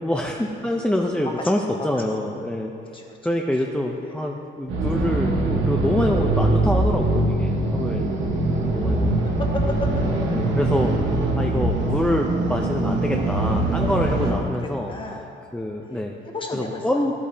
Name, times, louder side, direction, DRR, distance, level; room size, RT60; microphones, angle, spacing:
voice 1, 0.0-2.7 3.2-8.4 8.7-9.3 10.3-10.9 11.4-14.9 15.5-16.1 16.5-17.1, left 1 dB, 5° left, 0 dB, 0.6 m, -26 dB
voice 2, 1.2-1.6 2.0-2.3 2.9-3.2 4.0-4.4 9.2-9.9 11.4-11.5 14.2-14.3 14.8-15.2 15.8-17.3, left 2 dB, 25° left, 0 dB, 1.5 m, -34 dB
sound 1, 4.7-14.3, right 2 dB, 75° right, 1.7 m, -22 dB
13.0 x 8.6 x 2.8 m, 2.5 s
cardioid pair, 90°, 20 cm